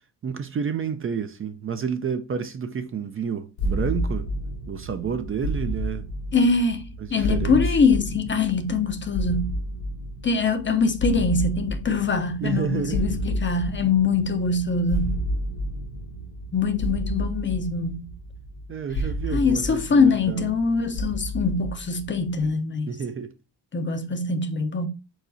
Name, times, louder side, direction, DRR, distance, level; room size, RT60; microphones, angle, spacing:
voice 1, 0.2-4.3 4.7-6.1 7.0-7.8 12.4-13.2 18.7-20.5 22.9-23.3, right 6 dB, 35° right, 0.4 m, -30 dB
sound 1, 3.6-22.5, equal, 85° left, 1.4 m, -31 dB
voice 2, 6.3-9.6 10.2-15.2 16.5-18.1 19.3-22.9 23.7-24.9, left 4 dB, 30° left, 0.6 m, -23 dB
4.7 x 4.0 x 2.6 m
cardioid pair, 115°, 40 cm